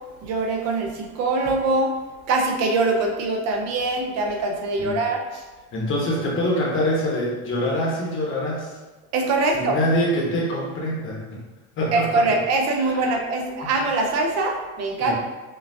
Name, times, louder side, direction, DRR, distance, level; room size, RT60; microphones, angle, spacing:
voice 1, 0.2-1.9 2.3-5.4 9.1-9.8 11.9-15.1, right 3 dB, 35° right, 2 dB, 0.6 m, -23 dB
voice 2, 5.7-8.8 9.5-11.4 11.8-12.2 12.8-13.1 15.0-15.1, equal, 30° left, -3 dB, 1.0 m, -25 dB
5.6 x 2.3 x 2.7 m, 1.2 s
supercardioid pair, 130°, 44 cm